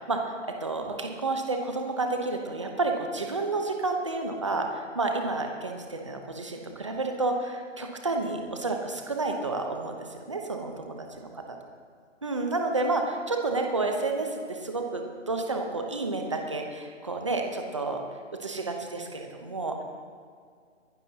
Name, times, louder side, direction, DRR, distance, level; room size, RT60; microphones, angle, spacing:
voice 1, 0.0-11.3 12.2-18.0 18.3-19.8, right 3 dB, 25° right, 3 dB, 0.8 m, -30 dB
24.0 x 11.5 x 2.8 m, 2.1 s
hypercardioid pair, 175°, 38 cm